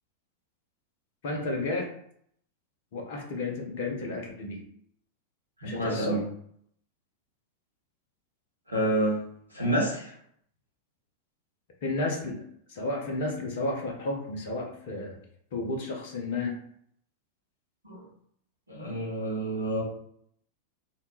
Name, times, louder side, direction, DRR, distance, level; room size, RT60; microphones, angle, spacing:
voice 1, 1.2-1.9 2.9-4.6 5.6-6.2 11.8-12.4 12.7-15.2 15.5-16.5, left 2 dB, 50° left, 1 dB, 0.6 m, -32 dB
voice 2, 5.6-6.2 8.7-9.2 9.5-10.1 17.8-18.0 18.7-19.8, right 1 dB, 80° right, -5 dB, 1.3 m, -28 dB
2.8 x 2.2 x 2.9 m, 0.67 s
figure-of-eight pair, 90°, 0 cm